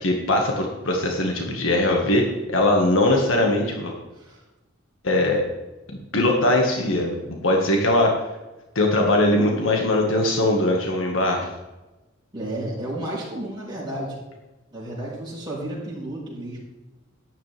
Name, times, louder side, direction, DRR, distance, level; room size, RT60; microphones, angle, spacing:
voice 1, 0.0-3.9 5.0-5.4 6.1-8.1 8.8-11.5, left 1 dB, 90° left, 1 dB, 1.8 m, -21 dB
voice 2, 12.3-14.2 14.7-16.6, right 1 dB, 25° right, -6 dB, 4.7 m, -32 dB
12.5 x 10.5 x 3.5 m, 1.1 s
head